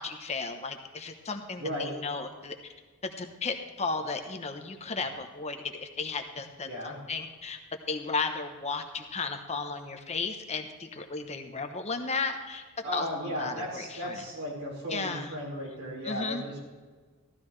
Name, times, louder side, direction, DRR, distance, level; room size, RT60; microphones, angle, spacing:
voice 1, 0.0-2.6 3.0-7.6 7.9-12.6 12.9-14.2 14.9-15.3 16.0-16.6, left 4 dB, 30° left, 6 dB, 0.9 m, -34 dB
voice 2, 1.6-1.9 6.6-6.9 12.8-16.6, equal, 70° right, -3 dB, 4.8 m, -35 dB
15.0 x 13.0 x 3.3 m, 1.4 s
head